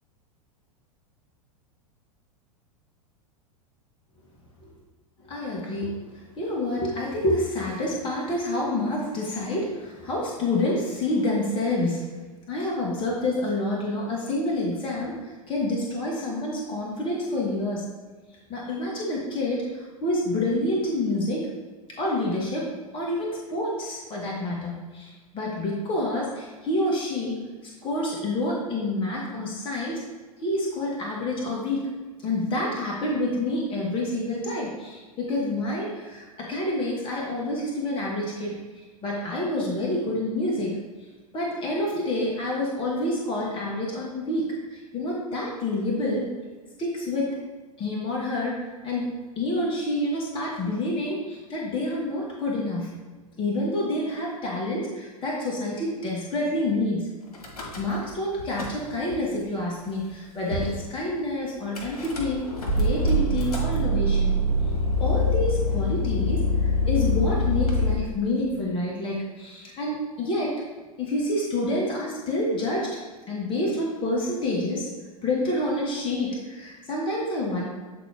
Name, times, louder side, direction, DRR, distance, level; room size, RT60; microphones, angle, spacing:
voice 1, 5.2-6.0 6.4-12.0 12.5-15.2 15.5-17.8 18.5-21.5 21.9-27.4 27.8-30.0 30.4-31.9 32.2-38.5 39.0-40.8 41.3-46.3 46.8-47.4 47.8-49.1 49.4-52.9 53.4-57.1 57.8-62.4 62.7-64.4 65.0-70.6 71.0-73.0 73.3-74.9 75.2-77.6, left 1 dB, 25° left, -3 dB, 1.6 m, -28 dB
Car / Engine starting / Idling, 57.3-58.1 58.4-59.2 59.8-59.9 60.1-60.2 60.5-60.8 61.7-67.9, left 1 dB, 80° left, 1.5 m, -25 dB
8.4 x 4.0 x 3.5 m, 1.4 s
figure-of-eight pair, 95°, 19 cm